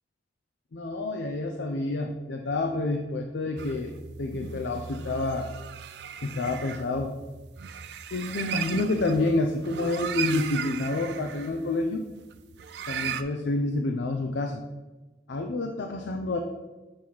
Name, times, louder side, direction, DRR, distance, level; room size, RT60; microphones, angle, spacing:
voice 1, 0.7-3.9 4.2-5.5 6.2-7.1 8.1-12.0 12.9-14.6 15.3-16.4, left 2 dB, 85° left, 4 dB, 0.5 m, -28 dB
sound 1, 3.6-13.2, right 8 dB, 75° right, 0.4 m, -37 dB
6.6 x 3.0 x 5.4 m, 1.2 s
head